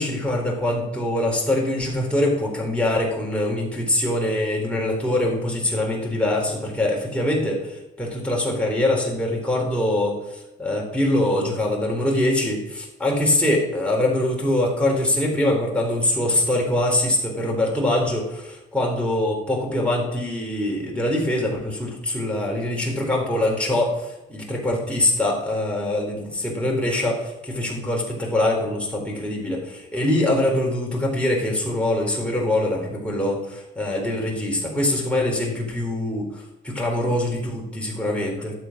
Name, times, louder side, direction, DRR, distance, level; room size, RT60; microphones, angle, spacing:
voice 1, 0.0-38.5, left 1 dB, 5° left, -2 dB, 3.9 m, -23 dB
11.5 x 7.6 x 6.0 m, 0.94 s
cardioid pair, 90°, 20 cm